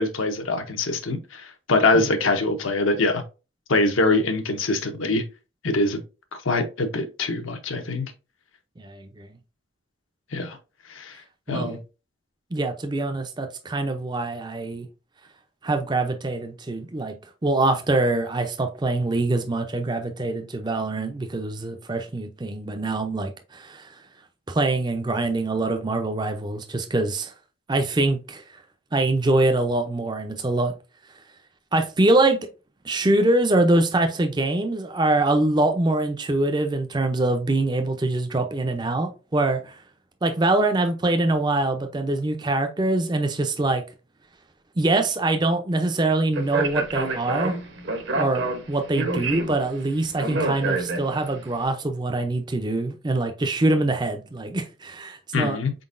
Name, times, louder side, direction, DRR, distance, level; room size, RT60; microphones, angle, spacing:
voice 1, 0.0-3.2 3.7-5.2 5.6-6.0 6.4-8.1 10.3-10.6 10.9-11.1 11.5-11.8 55.3-55.7, left 2 dB, 75° left, 0.8 m, -23 dB
voice 2, 8.8-9.3 11.5-11.8 12.5-14.9 15.6-17.1 17.4-24.0 24.5-27.3 27.7-28.4 28.9-30.7 31.7-32.4 32.8-39.8 40.2-43.8 44.8-47.6 48.2-55.6, right 2 dB, 20° right, 0.4 m, -24 dB
Speech, 46.3-51.4, right 2 dB, 60° right, 0.9 m, -28 dB
4.4 x 3.8 x 2.5 m
head